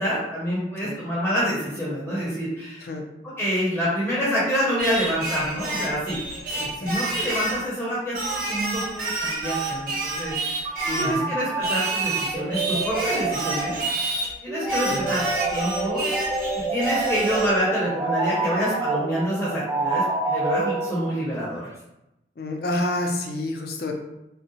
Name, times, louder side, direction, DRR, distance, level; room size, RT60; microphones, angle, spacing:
voice 1, 0.0-2.8 3.4-6.3 6.5-13.8 14.4-15.2 15.5-16.0 16.5-21.6, equal, 10° left, -8 dB, 0.7 m, -27 dB
Singing, 4.8-7.6 8.2-11.2 11.6-14.3 14.7-17.6, right 2 dB, 50° right, 0.7 m, -29 dB
voice 2, 6.6-6.9 10.9-11.3 14.9-15.1 22.4-23.9, left 1 dB, 55° left, 2 dB, 0.4 m, -29 dB
sound 1, 10.6-21.4, right 3 dB, 15° right, 0.3 m, -28 dB
3.6 x 2.0 x 2.7 m, 0.89 s
head